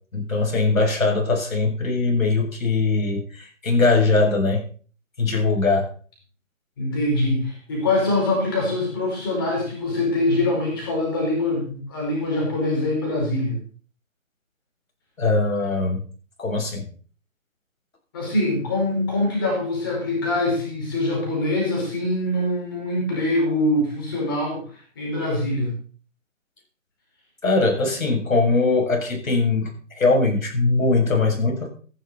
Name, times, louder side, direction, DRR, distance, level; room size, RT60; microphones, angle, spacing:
voice 1, 0.1-4.6 5.2-5.9 15.2-16.0 16.4-16.8 27.4-31.7, left 3 dB, 75° left, 1 dB, 7.0 m, -21 dB
voice 2, 6.8-13.6 18.1-24.6 24.9-25.7, left 1 dB, 15° left, -2 dB, 4.8 m, -23 dB
15.0 x 11.5 x 4.2 m, 0.42 s
hypercardioid pair, 180°, 41 cm